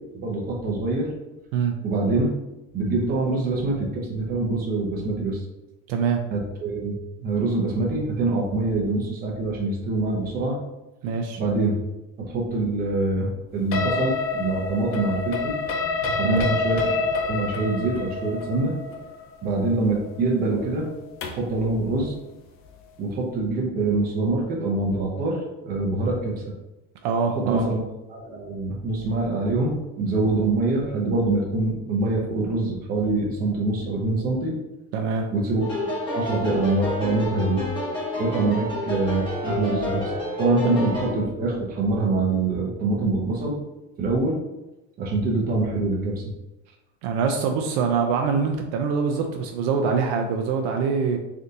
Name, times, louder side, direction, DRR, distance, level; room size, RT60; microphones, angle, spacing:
voice 1, 0.1-1.1 1.8-2.3 2.7-5.4 6.3-10.6 11.4-11.7 12.2-15.6 16.1-17.0 17.3-18.7 19.4-20.9 21.3-22.1 23.0-25.4 25.6-26.4 27.5-27.8 28.1-34.5 35.3-35.6 36.1-37.6 38.2-40.1 40.4-43.5 44.0-44.4 45.0-46.2, right 2 dB, 25° right, -2 dB, 0.7 m, -24 dB
voice 2, 5.9-6.2 11.0-11.4 16.2-16.4 27.0-27.7 34.9-35.3 47.0-51.2, right 5 dB, 70° right, 3 dB, 0.5 m, -24 dB
sound 1, 13.7-21.5, left 4 dB, 40° left, 0.4 m, -28 dB
sound 2, 35.6-41.1, left 1 dB, 15° left, 0.9 m, -29 dB
3.4 x 2.5 x 2.7 m, 0.98 s
cardioid pair, 160°, 33 cm